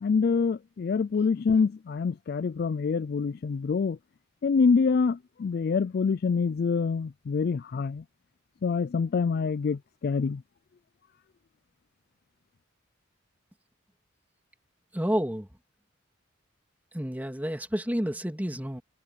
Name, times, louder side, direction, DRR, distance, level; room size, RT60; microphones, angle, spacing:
voice 1, 0.0-4.0 4.4-8.0 8.6-10.4, left 5 dB, 50° left, 0.3 m, -26 dB
voice 2, 14.9-15.5 16.9-18.8, equal, 10° right, 2.6 m, -30 dB
head